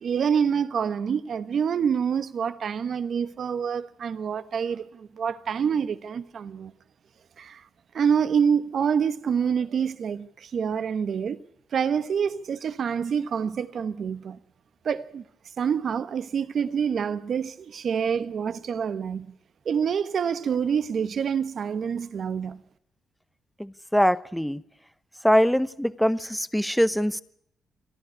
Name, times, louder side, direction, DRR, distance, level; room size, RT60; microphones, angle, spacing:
voice 1, 0.0-6.7 7.4-7.6 7.9-11.4 11.7-14.4 14.8-15.2 15.6-19.3 19.6-22.6, right 7 dB, 55° right, 1.2 m, -27 dB
voice 2, 23.6-24.6 25.2-27.2, equal, ahead, 0.9 m, -23 dB
28.5 x 11.5 x 9.7 m
cardioid pair, 85°, 0 cm